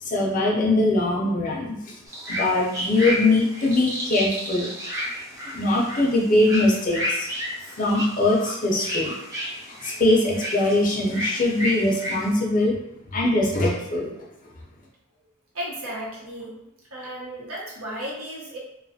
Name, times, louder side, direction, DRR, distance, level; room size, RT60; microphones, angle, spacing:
voice 1, 0.0-1.9 2.3-4.7 5.5-7.3 7.8-9.1 9.8-12.7 13.1-14.1, left 2 dB, 40° left, -2 dB, 0.5 m, -22 dB
sound 1, 2.1-12.3, equal, 15° right, 0.4 m, -31 dB
voice 2, 15.5-16.6 16.9-18.6, right 1 dB, 75° right, -5 dB, 0.9 m, -34 dB
2.5 x 2.3 x 2.7 m, 0.79 s
head